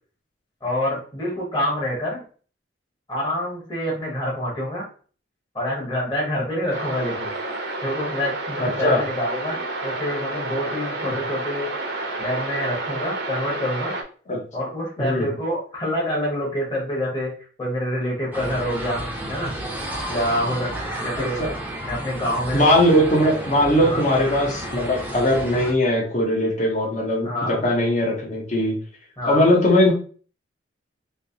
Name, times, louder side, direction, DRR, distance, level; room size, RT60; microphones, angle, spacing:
voice 1, 0.6-2.2 3.1-4.8 5.5-7.5 7.8-11.7 12.2-13.9 14.5-17.3 17.6-19.6 20.1-21.4 21.8-22.6 23.8-24.0 27.2-27.6 29.2-29.5, equal, 25° left, -5 dB, 1.3 m, -27 dB
sound 1, 6.7-14.0, right 2 dB, 60° right, 0.7 m, -30 dB
voice 2, 8.6-9.0 11.0-11.1 14.3-14.4 15.0-15.3 21.2-21.5 22.5-28.8 29.3-29.9, left 1 dB, 40° left, -1 dB, 1.0 m, -20 dB
sound 2, 18.3-25.7, right 1 dB, 10° right, 0.6 m, -32 dB
3.2 x 2.9 x 2.7 m, 0.41 s
head